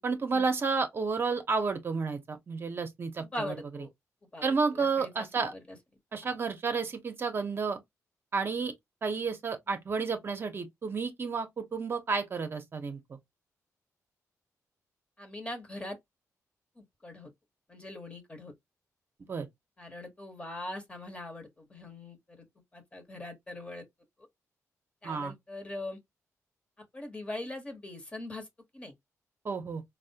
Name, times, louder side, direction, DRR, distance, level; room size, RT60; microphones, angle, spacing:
voice 1, 0.0-3.5 4.4-5.5 6.1-7.8 8.3-8.7 9.0-13.2 19.3-19.5 25.0-25.3 29.4-29.8, right 4 dB, 40° right, 0.7 m, -31 dB
voice 2, 3.2-3.9 4.3-5.8 6.2-6.4 15.2-16.0 16.8-17.3 17.7-18.5 19.8-22.5 22.7-23.8 25.0-26.0 26.9-28.5 28.7-28.9, left 1 dB, 20° left, 1.0 m, -41 dB
4.0 x 2.0 x 2.7 m
cardioid pair, 115°, 6 cm